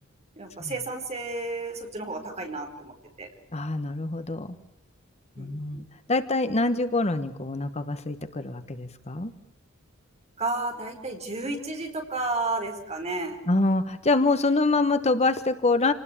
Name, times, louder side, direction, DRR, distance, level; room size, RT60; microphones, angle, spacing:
voice 1, 0.4-3.3 5.4-5.8 10.4-13.4, right 2 dB, 30° right, 3 dB, 4.6 m, -32 dB
voice 2, 3.5-4.6 5.4-9.3 13.5-15.9, left 2 dB, 30° left, 11 dB, 1.2 m, -25 dB
28.5 x 19.5 x 8.6 m, 0.83 s
head